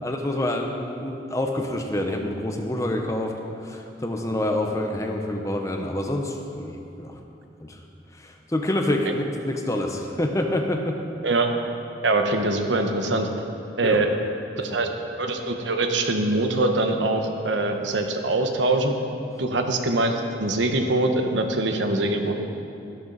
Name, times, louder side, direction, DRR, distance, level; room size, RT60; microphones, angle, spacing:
voice 1, 0.0-3.3 3.6-7.2 7.6-7.8 8.1-11.0 13.8-14.0 14.5-14.6, left 1 dB, 15° left, 3 dB, 0.8 m, -27 dB
voice 2, 12.0-13.3 13.8-14.1 14.6-14.9 15.2-18.9 19.4-22.3, right 2 dB, 85° right, 4 dB, 1.1 m, -23 dB
13.5 x 11.5 x 4.1 m, 2.7 s
head